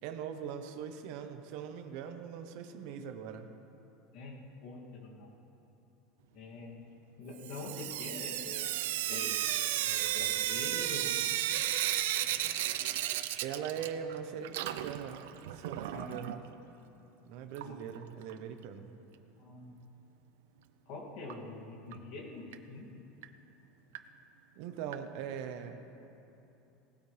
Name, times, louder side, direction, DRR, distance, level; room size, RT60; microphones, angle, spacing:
voice 1, 0.0-3.5 13.4-15.3 15.5-16.4 17.3-18.9 24.6-26.1, right 8 dB, 55° right, 7 dB, 0.9 m, -41 dB
voice 2, 4.1-5.3 6.3-6.8 7.2-8.7 9.1-9.5 9.8-11.2 15.9-16.2 17.6-17.7 19.4-19.8 20.9-22.9, left 2 dB, 50° left, -3 dB, 2.5 m, -45 dB
Sink (filling or washing) / Drip, 7.4-14.2 14.4-16.4 17.5-17.6 18.0-18.1 18.3-18.4 21.3-21.4 21.9-22.0 22.5-22.6 23.2-23.3 23.9-24.0 24.9-25.0, right 13 dB, 90° right, 0.5 m, -34 dB
19.0 x 13.0 x 3.4 m, 3.0 s
supercardioid pair, 165°, 0 cm